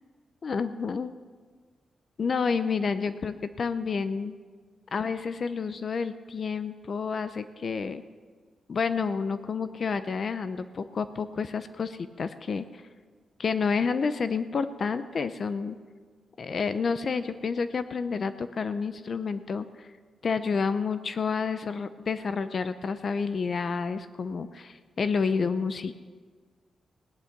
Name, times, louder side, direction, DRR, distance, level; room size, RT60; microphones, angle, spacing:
voice 1, 0.4-1.1 2.2-4.3 4.9-8.0 8.7-12.8 13.4-15.8 16.4-19.9 20.2-26.0, left 5 dB, 45° left, 12 dB, 0.6 m, -29 dB
17.5 x 10.5 x 5.9 m, 1.5 s
wide cardioid pair, 135°, 0 cm